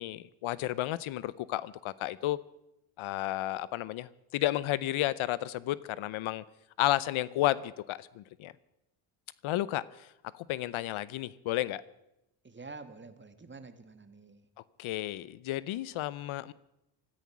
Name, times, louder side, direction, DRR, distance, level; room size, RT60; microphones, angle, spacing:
voice 1, 0.0-2.4 3.0-6.4 6.8-8.5 9.4-11.8 14.8-16.5, left 15 dB, 75° left, 19 dB, 0.7 m, -32 dB
voice 2, 12.4-14.5, right 3 dB, 20° right, 10 dB, 1.6 m, -48 dB
16.5 x 13.5 x 6.1 m, 0.86 s
cardioid pair, 90°, 49 cm